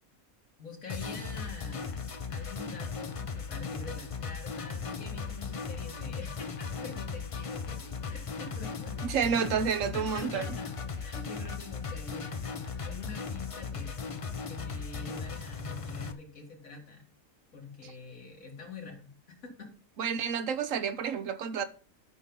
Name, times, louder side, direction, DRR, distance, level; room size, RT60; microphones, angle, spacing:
voice 1, 0.6-9.0 9.4-14.0 14.5-17.0 17.5-19.7, left 3 dB, 80° left, 2.4 m, -46 dB
sound 1, 0.9-16.1, left 5 dB, 45° left, 0.4 m, -37 dB
voice 2, 9.0-10.6 17.8-17.9 20.0-21.6, right 7 dB, 70° right, 1.1 m, -30 dB
12.0 x 5.8 x 3.9 m
omnidirectional pair, 1.4 m